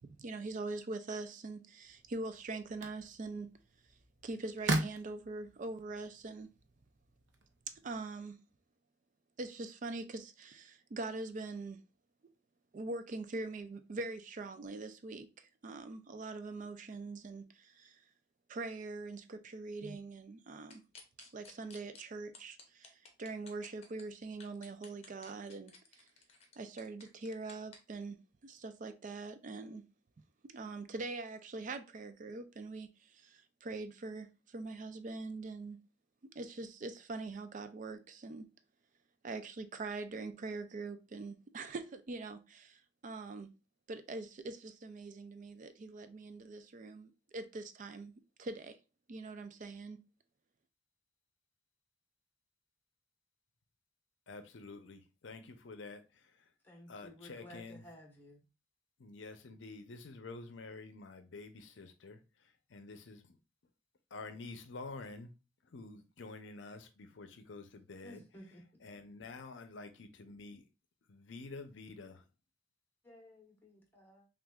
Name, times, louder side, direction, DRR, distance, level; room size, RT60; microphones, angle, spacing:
voice 1, 0.0-3.5 4.2-6.5 7.8-8.4 9.4-11.8 12.7-18.0 18.5-20.8 21.3-26.0 26.6-28.2 28.4-29.8 30.4-35.8 36.3-38.5 39.2-43.5 43.9-48.1 48.4-48.8 49.1-50.0, right 3 dB, 40° right, 0.4 m, -43 dB
sound 1, 1.8-8.0, right 2 dB, 65° right, 0.7 m, -41 dB
sound 2, 20.7-22.0 22.3-24.0 24.4-27.8, left 4 dB, 30° left, 0.8 m, -54 dB
voice 2, 54.3-56.5 56.9-57.8 59.0-63.4 64.1-65.3 65.6-68.2 68.8-70.7 71.1-72.3, left 3 dB, 65° left, 0.6 m, -49 dB
voice 3, 56.6-58.4 68.0-68.6 73.0-74.3, left 1 dB, 10° left, 1.1 m, -55 dB
6.0 x 2.4 x 2.3 m
head